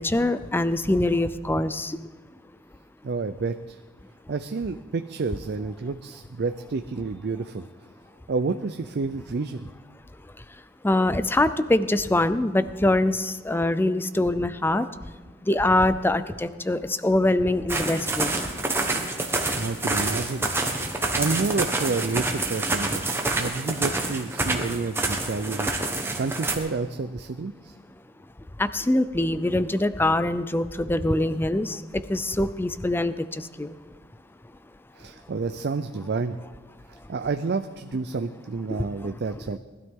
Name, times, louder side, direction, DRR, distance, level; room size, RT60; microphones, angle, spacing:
voice 1, 0.0-1.9 10.8-14.9 15.5-18.3 28.6-31.8 32.1-33.1 33.6-33.7 38.8-38.9, left 1 dB, 10° left, 13 dB, 0.4 m, -23 dB
voice 2, 3.0-3.8 4.3-7.6 8.3-9.6 19.6-20.5 21.1-23.1 23.3-25.7 26.2-27.7 35.0-36.4 37.1-39.6, right 4 dB, 60° right, 9 dB, 0.5 m, -29 dB
sound 1, 17.7-26.6, right 2 dB, 15° right, 1.3 m, -27 dB
19.5 x 12.5 x 3.7 m, 1.4 s
head